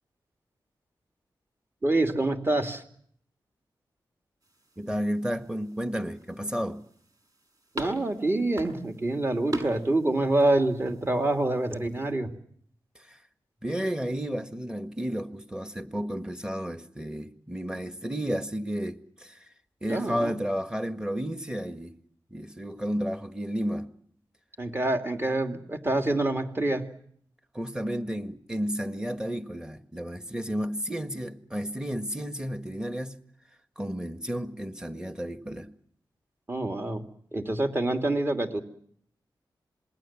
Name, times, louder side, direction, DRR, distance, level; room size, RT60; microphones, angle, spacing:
voice 1, 1.8-2.8 7.7-12.3 19.9-20.4 24.6-26.9 36.5-37.0 37.3-38.6, right 2 dB, 30° right, 2.8 m, -26 dB
sound 1, 4.4-12.1, right 1 dB, 45° right, 6.2 m, -42 dB
voice 2, 4.8-6.8 13.1-13.2 13.6-19.4 19.8-22.0 22.3-23.9 27.5-33.2 33.8-35.7, equal, 10° right, 1.7 m, -32 dB
27.0 x 20.5 x 7.5 m
wide cardioid pair, 85°, 8 cm